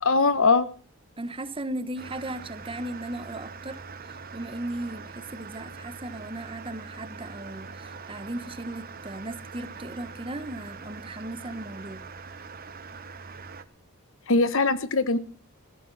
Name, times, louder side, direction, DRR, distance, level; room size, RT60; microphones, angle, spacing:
voice 1, 0.0-0.7 14.3-15.2, left 3 dB, 60° left, 1.2 m, -21 dB
voice 2, 1.2-12.0, right 1 dB, 25° right, 1.2 m, -37 dB
sound 1, 2.0-13.6, right 5 dB, 40° right, 1.2 m, -43 dB
17.0 x 16.0 x 4.1 m
head